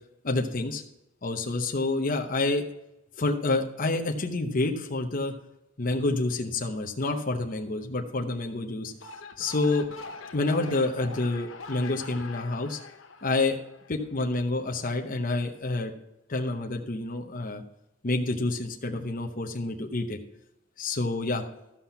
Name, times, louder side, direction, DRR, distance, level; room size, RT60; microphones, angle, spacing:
voice 1, 0.2-0.8 1.2-2.6 3.2-5.3 5.8-8.9 9.4-9.9 10.3-12.8 13.2-13.6 13.9-15.9 16.3-17.6 18.0-20.2 20.8-21.4, left 2 dB, 45° left, 2 dB, 0.8 m, -28 dB
sound 1, 8.9-14.2, left 4 dB, 75° left, 0.9 m, -43 dB
13.5 x 5.7 x 5.7 m, 0.91 s
head